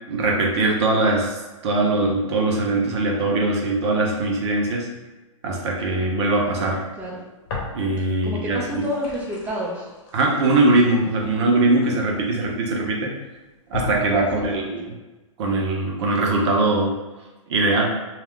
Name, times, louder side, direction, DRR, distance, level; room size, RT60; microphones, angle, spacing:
voice 1, 0.1-4.9 5.4-6.8 7.7-8.8 10.1-13.1 13.7-14.9 15.4-16.9 17.5-17.9, right 2 dB, 55° right, 0 dB, 0.8 m, -21 dB
sound 1, 7.5-8.2 8.6-12.5 13.1-13.2 13.7-14.6, left 3 dB, 45° left, 0.9 m, -36 dB
voice 2, 8.2-9.9 14.2-14.7, equal, 10° right, -3 dB, 0.4 m, -30 dB
2.3 x 2.3 x 3.5 m, 1.2 s
hypercardioid pair, 140°, 17 cm